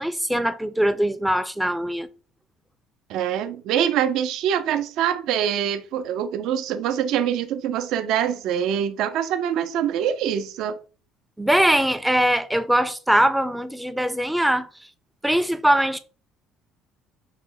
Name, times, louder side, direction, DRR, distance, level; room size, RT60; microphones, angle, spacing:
voice 1, 0.0-2.1 11.4-14.7 15.2-16.0, right 1 dB, 5° right, 0.4 m, -21 dB
voice 2, 3.1-10.8, right 9 dB, 70° right, 0.4 m, -24 dB
5.0 x 2.0 x 3.8 m
cardioid pair, 135°, 0 cm